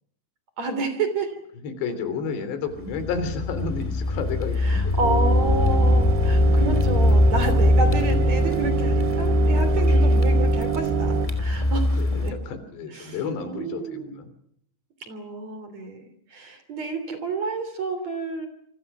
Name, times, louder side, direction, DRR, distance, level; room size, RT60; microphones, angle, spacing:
voice 1, 0.6-1.4 4.6-12.3 12.9-13.2 13.4-14.2 15.0-18.5, right 3 dB, 40° right, 10 dB, 3.9 m, -30 dB
voice 2, 1.6-5.3 12.0-14.3, left 5 dB, 65° left, 11 dB, 5.2 m, -31 dB
Car, 2.8-12.3, left 1 dB, 10° left, 1.6 m, -21 dB
sound 1, 5.0-11.3, right 9 dB, 75° right, 4.0 m, -28 dB
28.0 x 25.0 x 6.1 m, 0.69 s
omnidirectional pair, 5.4 m